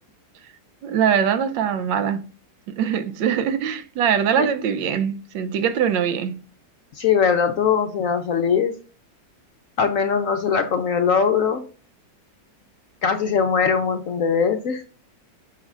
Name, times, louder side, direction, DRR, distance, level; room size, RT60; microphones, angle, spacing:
voice 1, 0.8-2.3 2.7-6.3, right 8 dB, 85° right, 1.4 m, -22 dB
voice 2, 6.9-8.7 9.8-11.6 13.0-14.8, left 6 dB, 65° left, 0.8 m, -21 dB
9.2 x 6.4 x 2.4 m
omnidirectional pair, 1.9 m